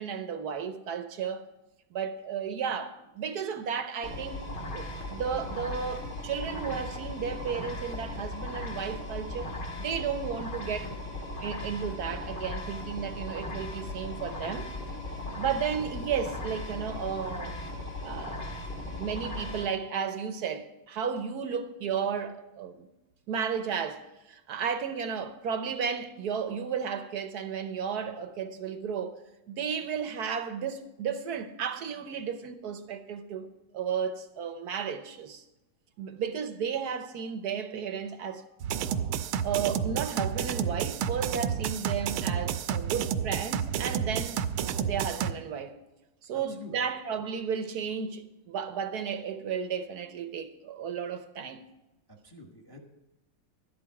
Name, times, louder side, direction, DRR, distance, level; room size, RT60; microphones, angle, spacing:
voice 1, 0.0-1.5 1.9-4.4 4.7-10.9 11.4-14.7 15.4-17.5 18.0-18.5 19.0-22.9 23.3-29.2 29.5-35.4 36.0-38.5 39.4-44.4 44.8-45.8 46.2-51.6, right 7 dB, 60° right, 1.1 m, -33 dB
sound 1, 4.0-19.7, left 1 dB, 55° left, 2.6 m, -37 dB
sound 2, 38.6-45.3, right 8 dB, 80° right, 1.5 m, -30 dB
voice 2, 46.3-46.7 52.1-52.8, left 2 dB, 15° left, 0.9 m, -48 dB
12.0 x 10.0 x 4.8 m
omnidirectional pair, 2.3 m